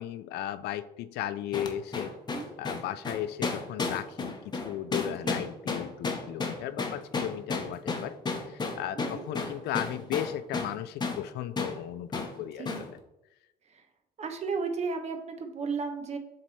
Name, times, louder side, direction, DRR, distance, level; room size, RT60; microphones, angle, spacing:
voice 1, 0.0-2.2 2.6-8.1 8.4-13.0, left 11 dB, 75° left, 13 dB, 0.4 m, -36 dB
sound 1, 1.5-10.8 11.0-11.2 11.6-11.8 12.1-12.3 12.7-12.9, left 3 dB, 25° left, 0.9 m, -32 dB
voice 2, 5.0-5.4 8.9-9.3 12.6-12.9 13.7-13.8 14.2-16.2, right 4 dB, 40° right, 5 dB, 0.9 m, -34 dB
7.5 x 3.2 x 4.1 m, 0.89 s
cardioid pair, 110°, 17 cm